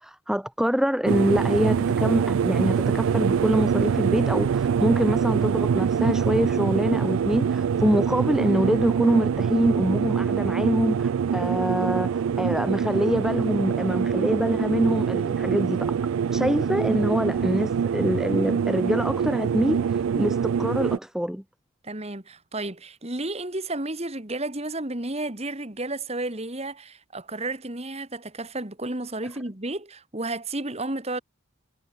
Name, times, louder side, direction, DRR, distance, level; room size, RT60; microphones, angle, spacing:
voice 1, 0.0-16.0 16.3-21.4, equal, ahead, 0.5 m, -25 dB
sound 1, 1.1-21.0, right 7 dB, 70° right, 0.3 m, -24 dB
voice 2, 21.8-31.2, right 2 dB, 30° right, 1.9 m, -32 dB
head